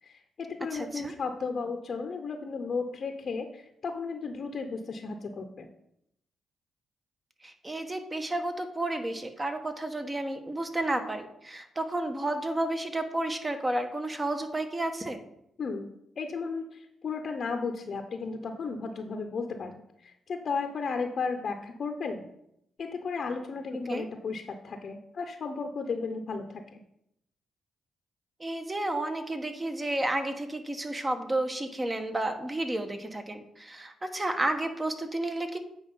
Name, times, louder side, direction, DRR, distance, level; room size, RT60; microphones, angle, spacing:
voice 1, 0.0-5.7 15.6-15.9 16.2-22.3 22.8-26.8, left 4 dB, 55° left, 5 dB, 0.8 m, -34 dB
voice 2, 0.7-1.1 7.4-15.2 23.9-24.1 28.4-35.6, right 1 dB, 20° right, 7 dB, 1.2 m, -31 dB
8.7 x 4.6 x 5.5 m, 0.78 s
cardioid pair, 70°, 0 cm